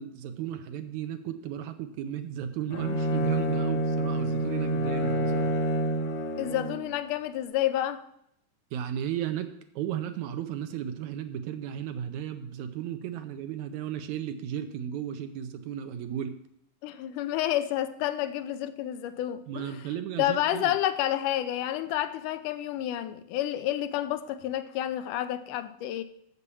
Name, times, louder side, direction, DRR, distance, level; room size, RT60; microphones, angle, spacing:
voice 1, 0.0-5.5 8.7-9.5 9.8-16.4 19.5-20.7, right 10 dB, 75° right, 2.0 m, -35 dB
Bowed string instrument, 2.7-6.9, right 1 dB, 60° left, 1.9 m, -28 dB
voice 2, 6.4-8.0 16.8-19.8 20.2-26.0, left 12 dB, 85° left, 2.2 m, -29 dB
7.3 x 6.9 x 6.9 m
omnidirectional pair, 3.6 m